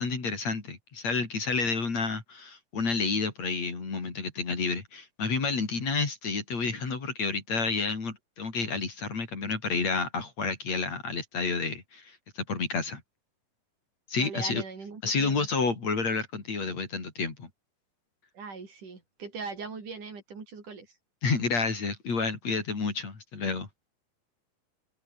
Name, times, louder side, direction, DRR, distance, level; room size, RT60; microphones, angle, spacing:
voice 1, 0.0-13.0 14.1-14.6 15.0-17.5 21.2-23.7, left 4 dB, 45° left, 5.4 m, -30 dB
voice 2, 14.1-15.5 18.3-21.0, right 4 dB, 60° right, 6.3 m, -40 dB
omnidirectional pair, 4.2 m